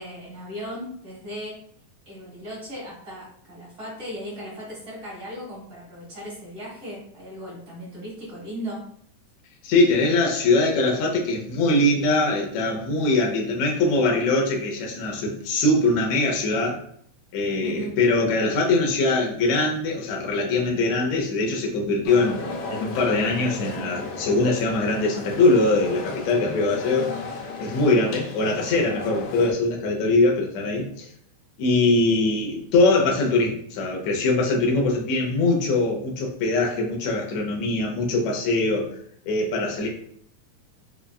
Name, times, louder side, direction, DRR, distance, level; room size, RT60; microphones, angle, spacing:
voice 1, 0.0-1.5 2.0-8.8 17.6-17.9, equal, 70° right, -8 dB, 0.5 m, -37 dB
voice 2, 9.6-16.8 17.3-22.4 22.7-27.1 27.6-31.1 31.6-38.9 39.3-39.9, left 2 dB, 75° left, -1 dB, 1.8 m, -22 dB
sound 1, 22.0-29.5, left 3 dB, 90° left, 2.4 m, -34 dB
5.4 x 2.4 x 2.3 m, 0.64 s
omnidirectional pair, 3.6 m